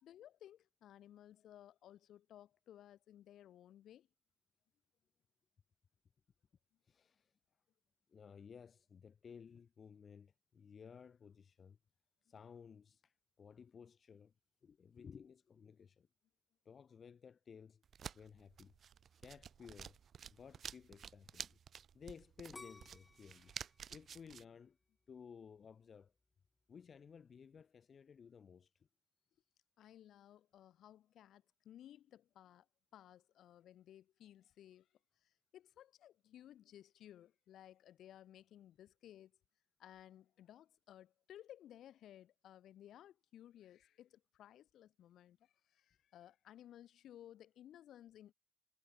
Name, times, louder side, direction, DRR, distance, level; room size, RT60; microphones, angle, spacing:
voice 1, 0.0-4.1 29.8-32.7 32.9-34.9 35.2-39.3 39.8-48.3, left 11 dB, 75° left, 2.5 m, -59 dB
voice 2, 6.8-7.3 8.1-11.8 12.2-14.3 14.6-16.1 16.6-17.8 18.1-18.7 19.2-20.0 20.3-21.6 21.9-23.5 23.9-24.8 25.1-26.1 26.7-28.9, left 6 dB, 45° left, 1.5 m, -57 dB
sound 1, 17.8-24.4, right 8 dB, 55° right, 0.5 m, -51 dB
sound 2, 22.5-25.4 25.9-26.4, left 3 dB, 20° left, 0.8 m, -58 dB
cardioid pair, 90°, 0 cm